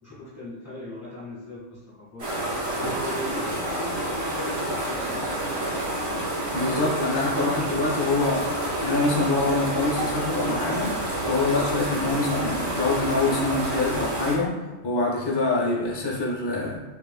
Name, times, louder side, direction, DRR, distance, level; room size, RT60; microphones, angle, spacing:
voice 1, 0.0-2.3 2.8-5.8, left 1 dB, 5° right, -9 dB, 1.2 m, -39 dB
sound 1, 2.2-14.4, right 1 dB, 60° right, 1.3 m, -28 dB
voice 2, 6.5-14.5 14.8-16.8, left 2 dB, 30° left, -4 dB, 0.5 m, -25 dB
5.5 x 2.3 x 2.2 m, 1.2 s
omnidirectional pair, 1.3 m